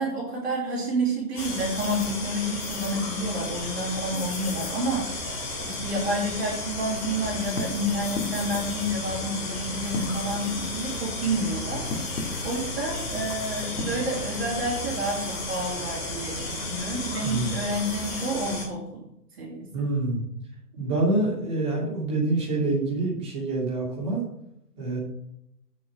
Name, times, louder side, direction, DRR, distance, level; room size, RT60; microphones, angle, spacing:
voice 1, 0.0-19.0 19.4-19.7, right 1 dB, 40° right, -7 dB, 3.1 m, -29 dB
sound 1, 1.3-18.6, left 2 dB, 35° left, 3.2 m, -33 dB
sound 2, 6.8-14.8, left 2 dB, 60° left, 2.2 m, -38 dB
voice 2, 17.2-17.5 19.7-20.2 20.8-24.2 24.8-25.0, right 2 dB, 15° right, -5 dB, 3.0 m, -26 dB
8.9 x 6.2 x 6.3 m, 0.79 s
hypercardioid pair, 180°, 48 cm